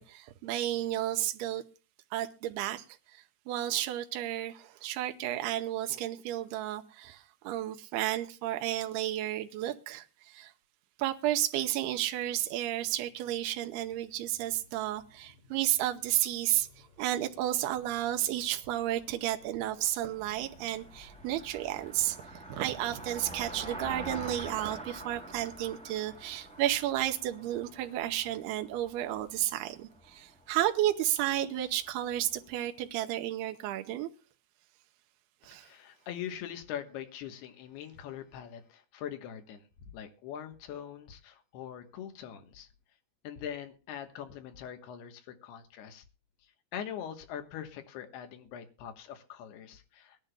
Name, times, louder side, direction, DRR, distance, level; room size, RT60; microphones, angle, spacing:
voice 1, 0.0-1.6 2.1-2.9 3.1-10.5 11.0-16.7 17.0-34.1 35.4-35.7, right 13 dB, 85° right, 2.8 m, -32 dB
sound 1, 11.4-24.4 24.7-24.8 25.0-25.1 25.3-25.4, left 3 dB, 30° left, 8.1 m, -62 dB
Car passing by, 20.1-32.4, right 1 dB, 5° left, 0.5 m, -46 dB
voice 2, 35.5-39.7 39.9-42.7 43.2-46.0 46.7-50.2, left 9 dB, 80° left, 3.3 m, -42 dB
23.0 x 10.5 x 2.2 m
omnidirectional pair, 4.6 m